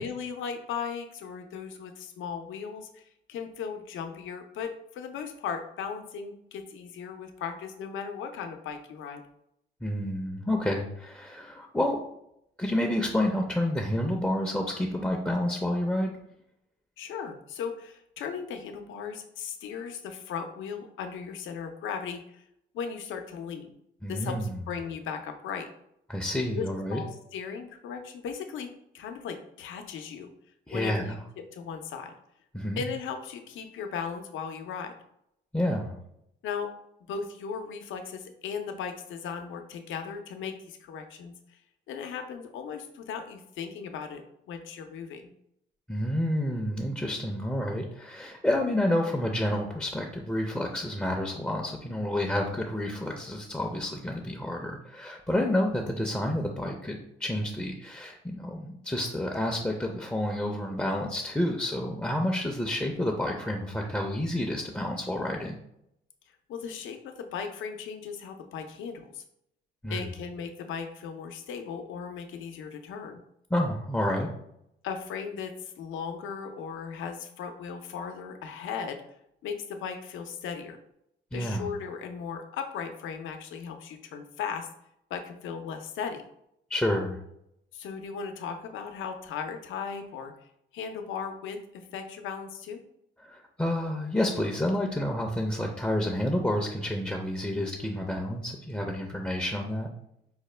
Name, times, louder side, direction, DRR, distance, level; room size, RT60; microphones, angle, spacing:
voice 1, 0.0-9.2 17.0-22.4 22.7-23.7 24.1-25.7 26.6-30.3 30.7-31.2 31.5-32.1 32.8-34.9 36.4-36.7 37.1-41.6 41.9-44.2 44.5-45.3 55.3-55.6 66.5-69.2 69.9-73.2 74.8-79.0 79.4-80.8 81.3-84.7 85.1-86.2 87.7-90.3 90.7-92.8, left 6 dB, 80° left, 6 dB, 0.5 m, -37 dB
voice 2, 9.8-12.0 12.6-16.1 24.0-24.6 26.1-27.0 30.7-31.2 32.5-32.8 35.5-35.9 45.9-65.6 69.8-70.1 73.5-74.3 81.3-81.7 86.7-87.2 93.2-99.9, left 1 dB, 5° left, 1 dB, 0.4 m, -29 dB
4.8 x 2.1 x 3.2 m, 0.78 s
cardioid pair, 90°, 20 cm